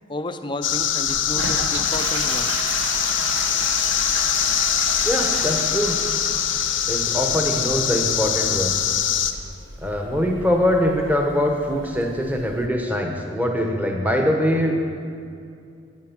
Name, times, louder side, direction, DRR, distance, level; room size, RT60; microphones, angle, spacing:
voice 1, 0.1-2.5, left 1 dB, 25° left, 8 dB, 0.5 m, -32 dB
sound 1, 0.6-9.3, left 10 dB, 80° left, 0.7 m, -23 dB
Toilet flush, 1.1-12.7, right 3 dB, 80° right, 0.9 m, -34 dB
voice 2, 5.0-6.0 6.9-8.8 9.8-14.8, equal, 10° right, 2 dB, 1.0 m, -23 dB
10.5 x 9.8 x 5.9 m, 2.4 s
head